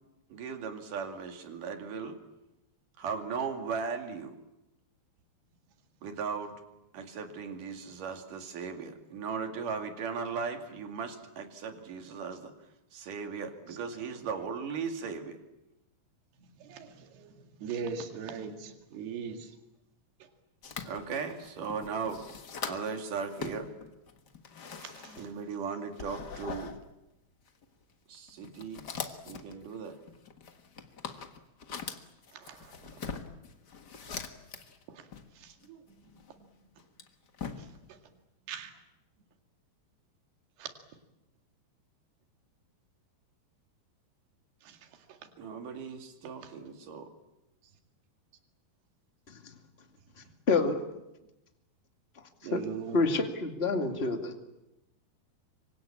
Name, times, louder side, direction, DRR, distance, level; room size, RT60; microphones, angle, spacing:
voice 1, 0.3-2.2 3.0-4.4 6.0-6.6 6.9-12.5 12.9-15.4 20.8-22.2 22.6-23.7 25.2-26.8 28.1-28.9 29.3-30.0 45.4-47.1, right 5 dB, 55° right, 5 dB, 3.8 m, -37 dB
voice 2, 16.4-19.5 24.8-25.3 29.0-29.2 32.3-32.8 34.9-35.1 35.4-36.5 37.6-38.0 38.5-38.7 40.6-40.7 44.6-44.8 45.1-45.2 46.4-46.5 52.4-53.0, right 6 dB, 80° right, 5 dB, 4.1 m, -41 dB
sound 1, 20.6-23.0 23.3-25.6 25.9-26.8 27.5-27.6 28.3-34.8 35.1-36.3 36.8-37.9, left 5 dB, 85° left, 0.9 m, -42 dB
voice 3, 50.5-50.8 52.5-52.6 52.9-54.3, left 3 dB, 25° left, 5 dB, 1.6 m, -27 dB
27.0 x 24.5 x 8.7 m, 0.93 s
omnidirectional pair, 4.6 m